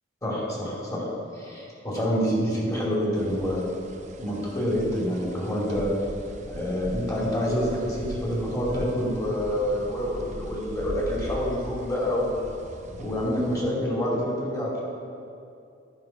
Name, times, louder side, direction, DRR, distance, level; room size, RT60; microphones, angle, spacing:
voice 1, 0.2-1.1 1.3-3.6 4.2-5.9 6.5-12.3 13.0-14.8, equal, 20° left, -5 dB, 2.6 m, -27 dB
sound 1, 3.1-13.6, right 1 dB, 40° right, 0.7 m, -40 dB
12.0 x 5.5 x 5.8 m, 2.5 s
head